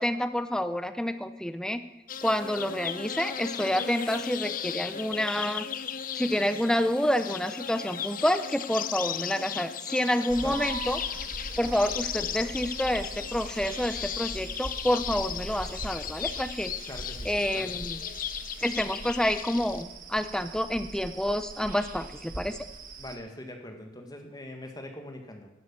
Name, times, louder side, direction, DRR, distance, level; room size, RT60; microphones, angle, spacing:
voice 1, 0.0-1.8 2.2-5.7 6.1-11.0 11.6-16.7 17.2-18.0 18.6-22.6, equal, 5° left, 11 dB, 0.6 m, -28 dB
sound 1, 2.1-19.8, left 9 dB, 45° left, 0.6 m, -36 dB
sound 2, 10.3-23.2, right 2 dB, 45° right, 1.3 m, -41 dB
voice 2, 16.8-17.9 23.0-25.5, left 1 dB, 20° left, 4 dB, 1.7 m, -42 dB
11.5 x 8.0 x 7.2 m, 1.1 s
head